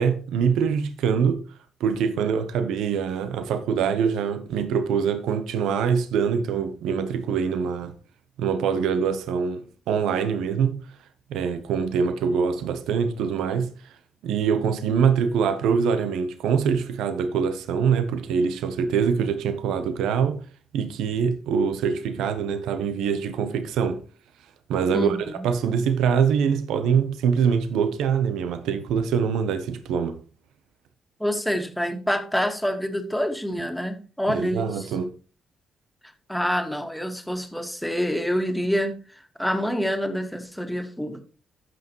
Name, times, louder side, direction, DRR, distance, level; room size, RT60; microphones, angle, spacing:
voice 1, 0.0-1.4 1.8-7.9 8.4-10.8 11.3-13.9 14.2-20.4 20.7-24.0 24.7-25.2 25.4-30.2 34.3-35.1, right 6 dB, 90° right, 0.9 m, -24 dB
voice 2, 24.9-25.5 31.2-34.9 36.3-41.2, equal, 5° left, 1.8 m, -27 dB
14.5 x 6.1 x 3.1 m
cardioid pair, 75°, 0 cm